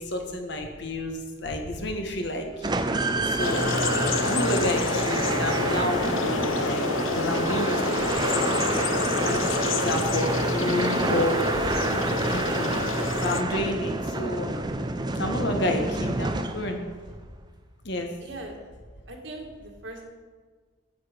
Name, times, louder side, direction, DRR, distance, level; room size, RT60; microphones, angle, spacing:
voice 1, 0.0-2.7 3.1-3.7 4.2-6.9 7.2-8.5 8.8-8.9 9.2-11.8 12.3-12.7 13.2-14.6 15.0-16.8 17.8-18.1, left 1 dB, 60° left, 3 dB, 1.5 m, -30 dB
sound 1, 2.6-16.9, right 2 dB, 20° right, 0.6 m, -28 dB
sound 2, 3.4-13.4, left 4 dB, 85° left, 0.7 m, -29 dB
voice 2, 18.2-18.6 19.1-20.0, right 2 dB, 65° right, 1 dB, 1.9 m, -40 dB
9.5 x 8.5 x 5.1 m, 1.5 s
head